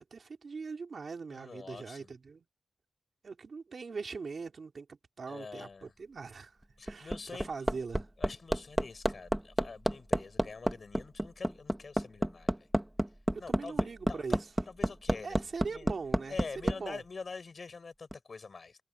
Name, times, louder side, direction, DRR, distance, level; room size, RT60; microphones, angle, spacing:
voice 1, 0.0-2.4 3.2-6.6 6.8-8.1 13.3-14.4 15.2-17.0, right 4 dB, 55° right, 3.2 m, -41 dB
voice 2, 1.3-2.1 5.3-5.9 6.8-7.5 8.2-12.7 13.4-15.4 15.7-15.9 16.3-18.8, left 4 dB, 45° left, 7.6 m, -45 dB
Hammer, 6.6-16.8 18.1-18.2, right 1 dB, 5° right, 1.7 m, -30 dB
wide cardioid pair, 170°, 0 cm